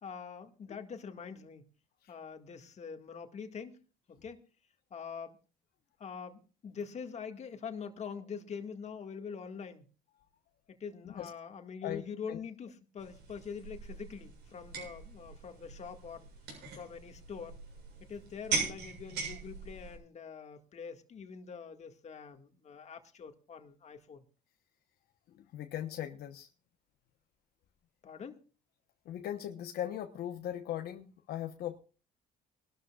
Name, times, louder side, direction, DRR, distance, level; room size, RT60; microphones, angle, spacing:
voice 1, 0.0-1.7 2.1-3.8 4.1-4.4 4.9-5.4 6.0-9.8 10.7-16.3 16.7-17.6 18.1-24.2 28.0-28.4, left 6 dB, 40° left, 2.0 m, -44 dB
sound 1, 13.0-20.0, right 5 dB, 85° right, 7.2 m, -40 dB
voice 2, 25.3-26.5 29.0-31.8, left 11 dB, 70° left, 1.1 m, -39 dB
23.5 x 12.5 x 2.4 m
cardioid pair, 110°, 17 cm